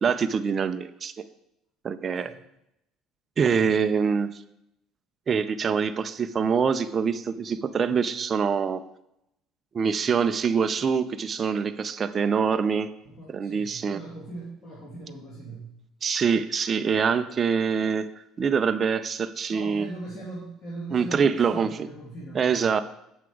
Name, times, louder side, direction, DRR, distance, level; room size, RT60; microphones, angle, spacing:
voice 1, 0.0-1.2 1.8-2.3 3.4-4.3 5.3-8.8 9.7-12.9 13.3-14.0 16.0-18.1 18.4-19.9 20.9-21.7 22.3-22.8, right 6 dB, 30° right, 10 dB, 0.5 m, -24 dB
voice 2, 13.0-15.7 19.5-22.7, right 2 dB, 35° left, -7 dB, 2.4 m, -40 dB
8.2 x 5.9 x 4.7 m, 0.82 s
cardioid pair, 145°, 0 cm